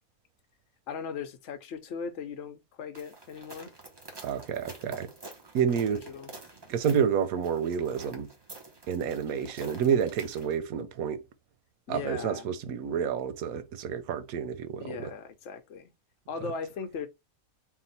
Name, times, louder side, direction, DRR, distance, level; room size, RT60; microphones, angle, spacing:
voice 1, 0.9-3.7 5.9-6.3 11.9-12.5 14.8-15.9 16.3-17.1, left 5 dB, 60° left, 1.0 m, -38 dB
sound 1, 2.9-10.6, right 2 dB, 20° right, 0.8 m, -48 dB
voice 2, 4.2-5.1 5.5-6.1 6.7-8.3 8.9-11.2 11.9-15.1, right 7 dB, 90° right, 1.1 m, -29 dB
3.7 x 2.4 x 3.9 m
omnidirectional pair, 1.5 m